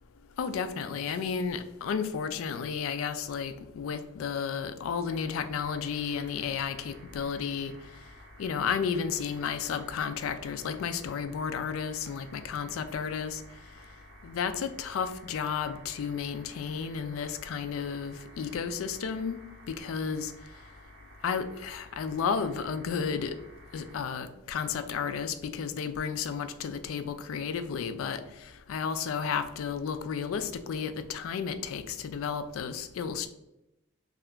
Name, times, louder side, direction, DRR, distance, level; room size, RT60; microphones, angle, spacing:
voice 1, 0.4-7.7 8.4-13.4 14.2-19.4 19.7-20.3 21.2-23.4 23.7-33.3, left 6 dB, 80° left, 10 dB, 0.3 m, -32 dB
sound 1, 5.1-24.0, equal, 55° right, 0.6 m, -53 dB
2.8 x 2.4 x 3.3 m, 0.91 s
head